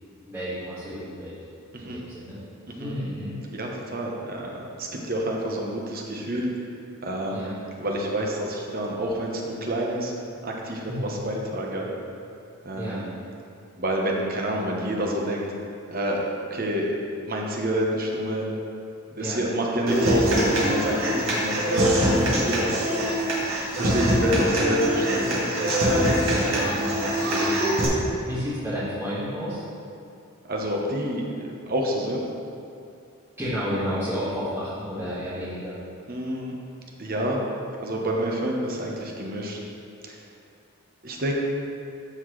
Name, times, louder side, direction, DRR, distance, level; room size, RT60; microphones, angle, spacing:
voice 1, 0.2-1.4 1.8-2.4 2.8-3.4 7.3-7.5 10.9-11.2 12.8-13.0 19.2-19.4 23.8-24.1 26.3-29.6 33.4-35.7, equal, 10° right, -15 dB, 1.7 m, -32 dB
voice 2, 3.5-6.5 7.0-7.5 7.8-10.1 10.4-11.9 12.6-13.1 13.8-15.5 15.9-16.9 17.2-18.5 19.1-23.1 23.8-25.7 27.8-27.9 30.4-32.2 36.1-36.5 37.0-37.4 37.8-39.6 40.0-40.2 41.0-41.3, right 1 dB, 45° right, -1 dB, 1.0 m, -28 dB
Human voice / Acoustic guitar, 19.9-27.9, equal, 65° right, 1.8 m, -23 dB
13.0 x 4.4 x 3.2 m, 2.6 s
head